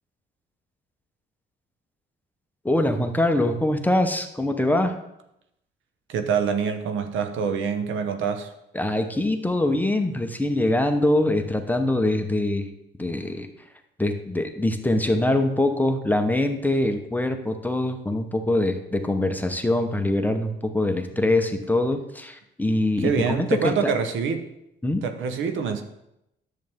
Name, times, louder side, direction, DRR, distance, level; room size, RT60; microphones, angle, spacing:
voice 1, 2.6-5.0 8.7-12.7 13.0-13.5 14.0-23.9 24.8-25.0, left 1 dB, 10° left, 6 dB, 0.9 m, -23 dB
voice 2, 6.1-8.5 23.0-24.5 25.0-25.8, right 6 dB, 75° right, 8 dB, 1.0 m, -26 dB
10.5 x 7.8 x 3.6 m, 0.83 s
cardioid pair, 90°, 20 cm